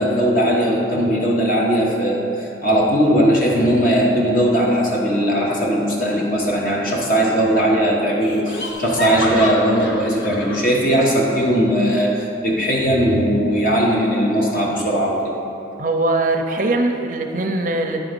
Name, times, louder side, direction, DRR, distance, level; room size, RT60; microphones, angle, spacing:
voice 1, 0.0-15.3, equal, 45° left, -2 dB, 1.2 m, -18 dB
Laughter, 6.9-7.4 7.7-7.8 8.2-10.7, left 2 dB, 65° left, 0.8 m, -29 dB
voice 2, 15.8-18.0, right 2 dB, 45° right, 4 dB, 0.5 m, -21 dB
9.8 x 3.9 x 5.2 m, 2.8 s
head